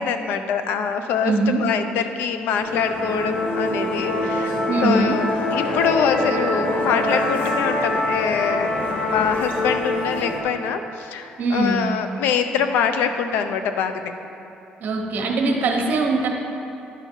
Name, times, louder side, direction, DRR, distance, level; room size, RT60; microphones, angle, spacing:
voice 1, 0.0-14.1, left 6 dB, 85° left, 8 dB, 0.5 m, -24 dB
voice 2, 1.2-1.6 4.7-5.3 11.4-11.9 14.8-16.3, right 3 dB, 60° right, 1 dB, 1.0 m, -21 dB
Musical instrument, 2.6-10.4, left 2 dB, 60° left, 1.1 m, -24 dB
10.0 x 4.0 x 4.5 m, 2.7 s
cardioid pair, 100°, 3 cm